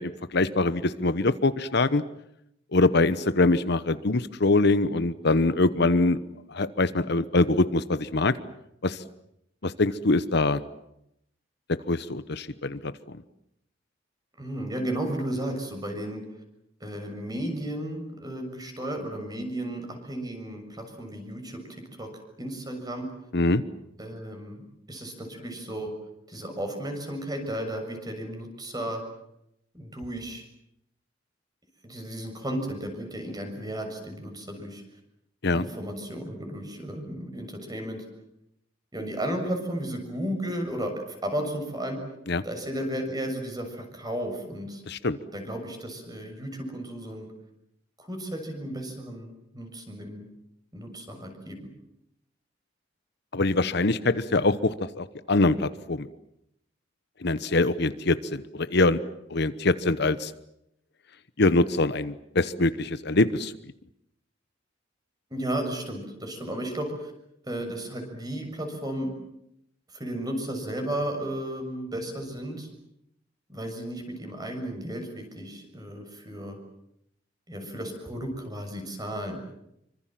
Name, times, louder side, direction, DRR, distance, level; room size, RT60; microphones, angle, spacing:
voice 1, 0.0-2.0 2.7-6.2 6.5-8.4 8.8-9.0 9.6-10.6 11.9-13.2 23.3-23.6 35.4-35.6 42.3-42.4 44.9-45.2 53.3-56.1 57.2-59.0 59.3-60.3 61.4-63.5, left 2 dB, 60° left, 13 dB, 1.1 m, -24 dB
voice 2, 14.4-16.2 16.8-21.6 22.0-22.1 22.4-23.1 24.0-25.9 26.3-29.0 29.7-30.4 31.8-34.8 35.5-38.0 38.9-42.0 42.4-44.8 45.3-47.3 48.0-49.3 49.5-50.2 50.7-51.6 65.3-67.1 67.4-69.1 69.9-72.7 73.5-76.6 77.5-79.4, right 1 dB, 20° right, 4 dB, 6.8 m, -34 dB
26.5 x 25.0 x 7.7 m, 0.79 s
head